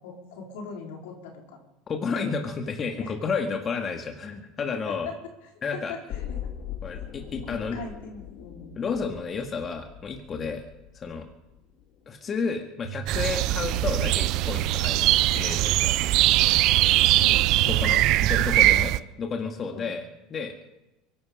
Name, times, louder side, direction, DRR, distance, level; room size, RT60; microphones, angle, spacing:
voice 1, 0.0-1.6 2.1-2.3 3.0-3.1 4.7-5.1 5.7-6.4 7.5-8.8 17.1-18.2 19.7-19.9, left 4 dB, 80° left, 0 dB, 4.3 m, -40 dB
voice 2, 1.9-5.1 5.6-5.9 6.8-7.8 8.8-10.6 10.9-11.3 12.1-15.1 15.3-16.0 17.7-20.1 20.3-20.5, left 5 dB, 35° left, 3 dB, 2.0 m, -31 dB
sound 1, 6.1-12.1 12.4-12.5, left 10 dB, 60° left, 2.4 m, -40 dB
sound 2, 12.8-18.2, right 8 dB, 85° right, 5.6 m, -35 dB
sound 3, 13.1-19.0, right 16 dB, 60° right, 0.6 m, -21 dB
23.5 x 11.0 x 5.1 m, 1.0 s
hypercardioid pair, 90°, 0 cm